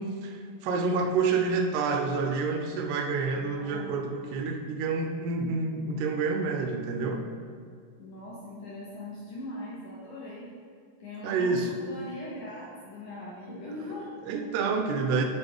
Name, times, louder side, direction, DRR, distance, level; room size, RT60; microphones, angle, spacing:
voice 1, 0.0-7.2 11.2-11.8 14.3-15.2, right 4 dB, 80° right, 4 dB, 2.5 m, -28 dB
voice 2, 3.3-3.9 8.0-10.5 11.0-14.1, left 1 dB, 80° left, -6 dB, 1.7 m, -40 dB
10.5 x 3.7 x 3.6 m, 2.2 s
omnidirectional pair, 4.8 m